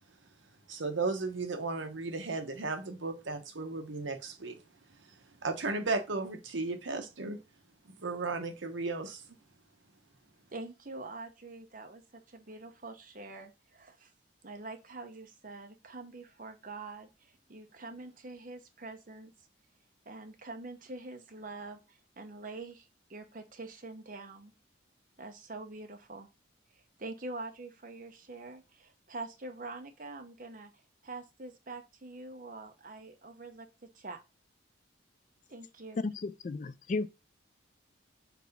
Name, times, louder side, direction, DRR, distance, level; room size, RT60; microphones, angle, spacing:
voice 1, 0.7-4.6 5.0-5.2 5.4-7.4 7.8-9.2, right 3 dB, 70° right, 1.0 m, -35 dB
voice 2, 10.5-14.1 14.4-19.3 20.1-24.5 25.2-26.3 26.7-30.7 31.0-34.2 35.5-36.0, right 3 dB, 40° right, 0.9 m, -45 dB
voice 3, 36.0-37.1, left 3 dB, 40° left, 0.3 m, -34 dB
4.6 x 4.0 x 5.3 m
head